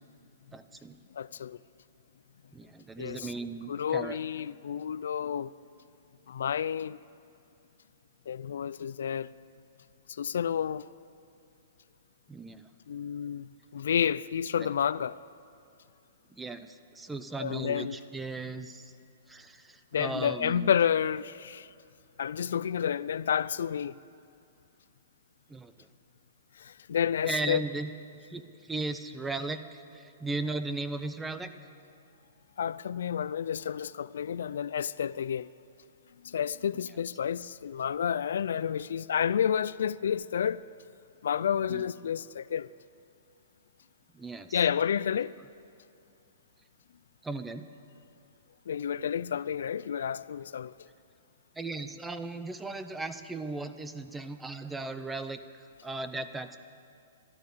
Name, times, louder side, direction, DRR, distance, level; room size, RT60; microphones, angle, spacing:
voice 1, 0.5-1.0 2.5-4.2 12.3-12.7 14.6-14.7 16.3-18.9 19.3-20.7 25.5-25.9 27.2-31.5 41.7-41.8 44.1-44.6 47.2-47.7 51.6-56.6, right 3 dB, 5° right, 0.6 m, -37 dB
voice 2, 1.1-1.6 3.0-3.3 3.7-5.5 6.3-7.0 8.3-9.3 10.1-10.9 12.9-15.2 17.4-18.0 19.9-21.7 22.2-23.9 26.6-27.6 32.6-35.5 36.2-40.6 41.2-42.7 44.5-45.3 48.7-50.7, left 8 dB, 80° left, 0.3 m, -30 dB
13.0 x 12.0 x 8.4 m
hypercardioid pair, 160°, 0 cm